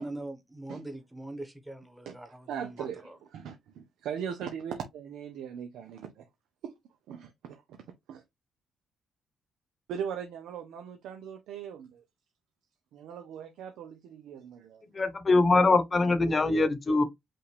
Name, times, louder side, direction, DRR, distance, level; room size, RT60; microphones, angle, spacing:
voice 1, 0.0-2.9, right 2 dB, 5° right, 1.1 m, -42 dB
voice 2, 2.1-6.3 6.6-6.7 7.1-7.6 8.1-8.2 9.9-12.0 12.9-14.8, right 8 dB, 85° right, 0.6 m, -39 dB
voice 3, 14.9-17.0, left 3 dB, 30° left, 1.0 m, -23 dB
5.5 x 2.5 x 3.3 m
cardioid pair, 90°, 0 cm